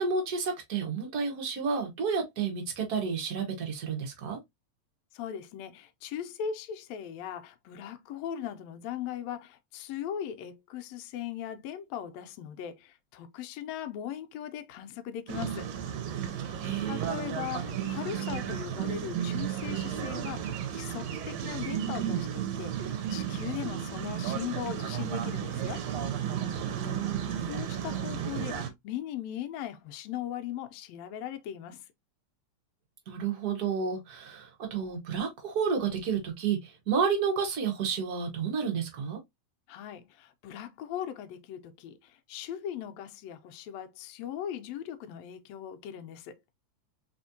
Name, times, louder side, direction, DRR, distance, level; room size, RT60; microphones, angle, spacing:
voice 1, 0.0-4.4 16.6-17.2 26.8-27.4 33.1-39.2, right 6 dB, 50° right, 1.1 m, -31 dB
voice 2, 5.1-15.7 16.9-25.8 27.5-31.8 39.7-46.4, left 10 dB, 80° left, 1.7 m, -39 dB
sound 1, 15.3-28.7, right 9 dB, 70° right, 1.8 m, -33 dB
4.2 x 3.5 x 2.7 m
omnidirectional pair, 3.3 m